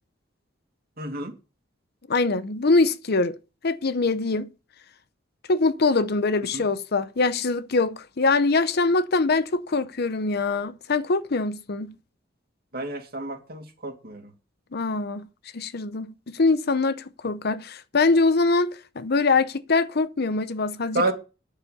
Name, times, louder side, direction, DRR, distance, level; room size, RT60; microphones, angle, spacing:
voice 1, 1.0-1.3 6.5-6.6 12.7-14.2 20.9-21.1, right 2 dB, 55° right, 2.4 m, -29 dB
voice 2, 2.1-3.4 3.6-4.5 5.5-11.9 14.7-15.3 15.5-21.1, left 3 dB, 55° left, 0.8 m, -23 dB
9.7 x 6.9 x 8.3 m
head